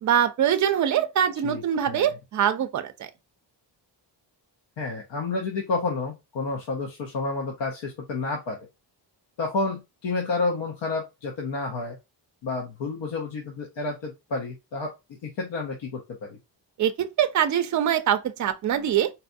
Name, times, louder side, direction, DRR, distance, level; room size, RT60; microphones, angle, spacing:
voice 1, 0.0-3.1 16.8-19.1, right 9 dB, 45° right, 0.4 m, -23 dB
voice 2, 1.4-2.1 4.8-8.6 9.4-12.0 12.4-14.9 15.2-16.4, left 3 dB, 80° left, 0.9 m, -30 dB
4.1 x 2.3 x 2.5 m
wide cardioid pair, 170°, 44 cm